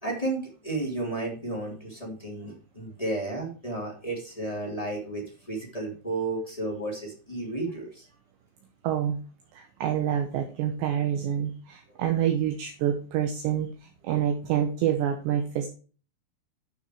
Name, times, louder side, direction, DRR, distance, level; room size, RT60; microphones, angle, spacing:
voice 1, 0.0-8.1, right 2 dB, 10° left, -2 dB, 2.0 m, -33 dB
voice 2, 8.8-9.2 9.5-15.7, right 10 dB, 70° right, 4 dB, 3.0 m, -27 dB
11.5 x 6.8 x 4.6 m, 0.38 s
omnidirectional pair, 5.9 m